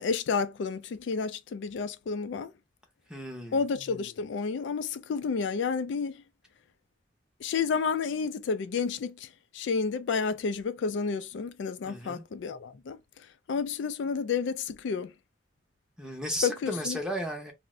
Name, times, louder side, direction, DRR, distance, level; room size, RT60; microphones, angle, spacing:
voice 1, 0.0-2.5 3.5-6.2 7.4-15.1 16.4-17.0, left 5 dB, 75° left, 0.3 m, -31 dB
voice 2, 3.1-3.6 11.8-12.2 16.0-17.5, equal, 5° right, 0.6 m, -34 dB
2.5 x 2.0 x 3.7 m
head